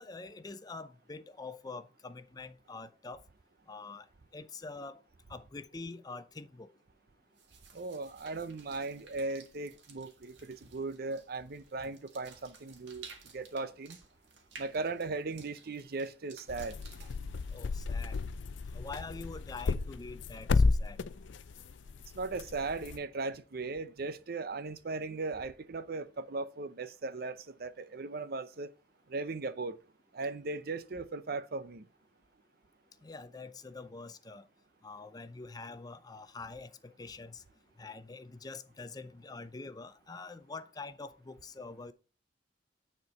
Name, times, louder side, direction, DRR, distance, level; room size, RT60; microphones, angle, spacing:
voice 1, 0.0-3.2 3.7-4.1 4.3-5.0 5.3-6.7 17.5-18.2 18.7-21.0 33.0-34.4 34.8-37.4 37.8-41.9, left 3 dB, 20° left, 0.5 m, -45 dB
sound 1, 7.3-18.5, right 4 dB, 75° right, 1.8 m, -55 dB
voice 2, 7.7-13.1 13.3-14.0 14.6-16.8 22.1-28.7 29.1-29.8 30.1-31.8, right 3 dB, 55° right, 0.6 m, -38 dB
sound 2, 16.5-23.0, left 4 dB, 85° left, 0.5 m, -33 dB
9.6 x 4.5 x 5.5 m
head